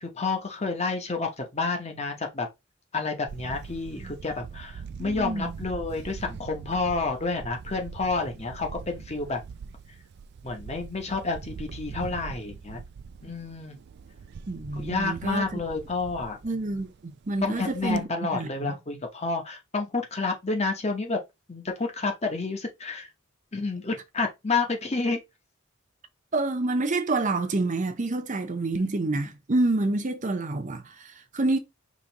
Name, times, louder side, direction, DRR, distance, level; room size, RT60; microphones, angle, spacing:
voice 1, 0.0-2.5 2.9-9.4 10.4-12.8 13.2-13.8 14.8-16.8 17.4-21.2 21.5-23.1 23.5-25.2, left 3 dB, 30° left, 1.0 m, -30 dB
Camera, 3.3-18.0, right 5 dB, 55° right, 0.3 m, -42 dB
voice 2, 5.0-5.6 14.5-15.5 16.4-18.7 26.3-31.6, right 2 dB, 40° right, 0.7 m, -28 dB
5.2 x 3.1 x 3.0 m
head